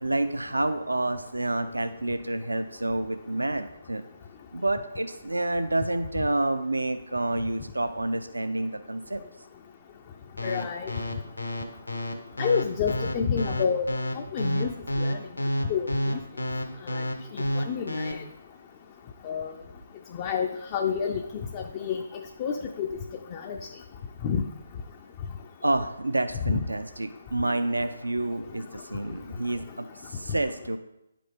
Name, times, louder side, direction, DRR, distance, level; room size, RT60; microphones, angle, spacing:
voice 1, 0.0-4.1 4.5-9.2 25.6-30.8, right 2 dB, 80° right, 9 dB, 0.5 m, -29 dB
sound 1, 10.4-18.1, equal, 85° left, 1.0 m, -29 dB
voice 2, 10.4-10.9 12.4-13.9 14.1-14.7 15.0-15.2 15.7-15.9 16.9-17.0 17.3-18.2 19.2-19.5 20.1-21.2 21.5-22.0 22.4-22.9 23.3-23.6 24.2-24.4, left 6 dB, 30° left, 4 dB, 0.4 m, -28 dB
9.7 x 5.1 x 3.4 m, 0.88 s
figure-of-eight pair, 140°, 0 cm